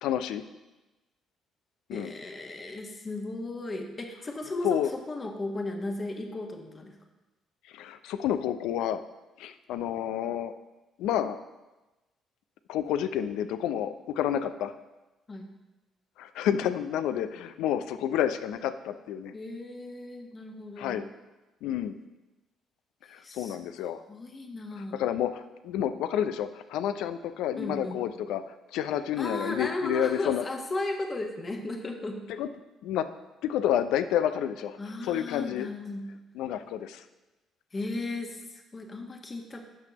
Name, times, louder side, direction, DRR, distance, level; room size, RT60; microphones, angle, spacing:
voice 1, 0.0-0.4 1.9-2.1 4.6-4.9 7.7-9.0 9.4-10.5 11.0-11.4 12.7-14.7 16.2-19.3 20.8-21.1 21.6-22.0 23.1-24.0 25.0-28.4 28.7-30.4 32.4-32.5 32.8-33.1 33.4-34.8 35.0-35.7 36.3-37.0, left 10 dB, 70° left, 11 dB, 0.4 m, -29 dB
voice 2, 1.9-7.0 15.3-15.5 19.3-21.0 23.1-23.6 24.1-25.0 27.6-28.0 29.2-32.2 34.8-36.1 37.7-39.7, left 2 dB, 35° left, 3 dB, 1.3 m, -35 dB
11.5 x 6.0 x 3.0 m, 1.1 s
hypercardioid pair, 50°, 0 cm